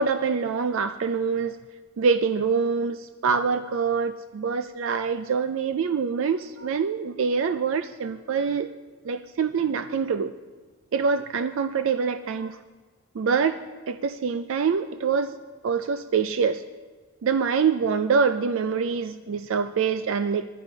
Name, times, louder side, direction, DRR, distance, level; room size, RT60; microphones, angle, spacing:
voice 1, 0.0-1.6 2.0-8.7 9.0-10.3 10.9-12.6 13.1-13.6 13.9-15.4 15.6-16.6 17.2-20.5, right 5 dB, 65° right, 11 dB, 0.4 m, -25 dB
11.5 x 9.8 x 5.3 m, 1.4 s
head